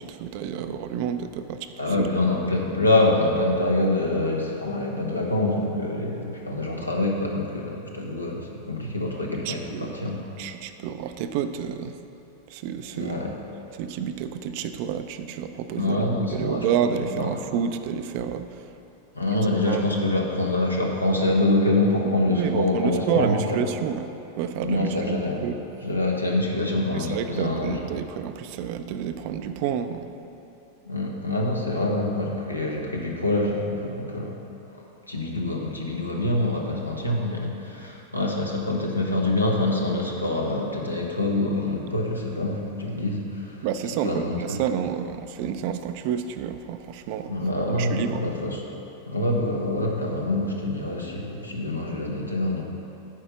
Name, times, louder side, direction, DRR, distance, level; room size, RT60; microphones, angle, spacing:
voice 1, 0.1-1.7 2.0-2.1 9.5-11.9 12.5-13.2 13.8-18.5 19.7-19.8 22.3-24.1 24.4-24.9 25.4-25.6 27.1-30.1 43.6-47.3 47.8-48.2, right 8 dB, 45° right, 9 dB, 0.5 m, -29 dB
voice 2, 1.8-10.3 12.9-13.4 15.7-17.4 19.1-23.7 24.6-25.5 25.8-27.9 30.8-34.3 34.7-43.7 44.0-44.7 47.3-48.6 49.1-52.6, left 2 dB, 85° left, -1 dB, 1.2 m, -25 dB
9.1 x 4.9 x 7.1 m, 2.9 s
figure-of-eight pair, 90°, 0 cm